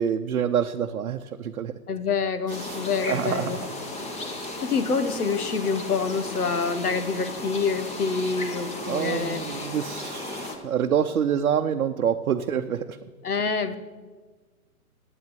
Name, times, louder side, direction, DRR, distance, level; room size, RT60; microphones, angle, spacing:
voice 1, 0.0-1.7 2.6-3.5 8.9-13.0, right 8 dB, 65° right, 5 dB, 0.8 m, -27 dB
voice 2, 1.9-3.6 4.6-9.4 13.2-13.8, left 5 dB, 80° left, 11 dB, 1.3 m, -26 dB
sound 1, 2.5-10.6, left 2 dB, 15° left, 1.3 m, -35 dB
9.4 x 8.7 x 9.0 m, 1.4 s
figure-of-eight pair, 125°, 44 cm